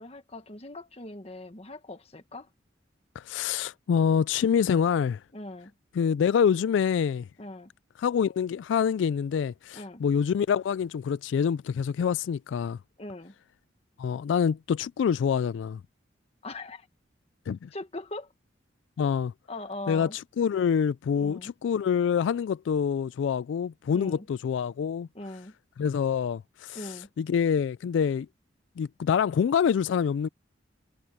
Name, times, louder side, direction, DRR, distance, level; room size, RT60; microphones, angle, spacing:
voice 1, 0.0-2.5 5.3-5.7 7.4-7.7 9.7-10.0 13.0-13.3 16.4-16.9 17.7-18.3 19.5-20.2 21.2-21.5 23.9-24.2 25.1-25.5 26.7-27.1, left 2 dB, 35° left, 1.6 m, -40 dB
voice 2, 3.2-5.2 5.9-7.3 8.0-12.8 14.0-15.8 17.5-17.7 19.0-19.3 19.9-25.1 25.8-28.3 28.8-30.3, left 7 dB, 90° left, 0.3 m, -26 dB
head